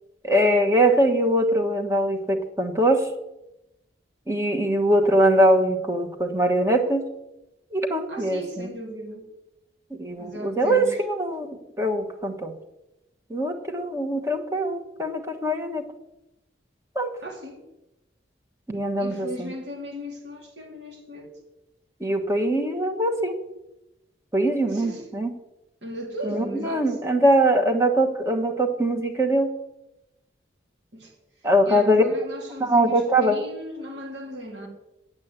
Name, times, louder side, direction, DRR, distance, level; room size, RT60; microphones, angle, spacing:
voice 1, 0.2-3.1 4.3-7.0 7.7-8.7 9.9-12.5 13.3-15.8 16.9-17.1 18.7-19.5 22.0-23.4 24.3-25.3 26.2-29.5 31.4-32.0 32.6-33.4, right 1 dB, 15° right, 1.2 m, -22 dB
voice 2, 8.1-9.3 10.2-10.9 17.2-17.6 19.0-21.3 24.7-25.0 25.8-26.9 30.9-31.1 31.6-34.7, equal, 75° right, 3.0 m, -36 dB
8.7 x 8.5 x 8.1 m
head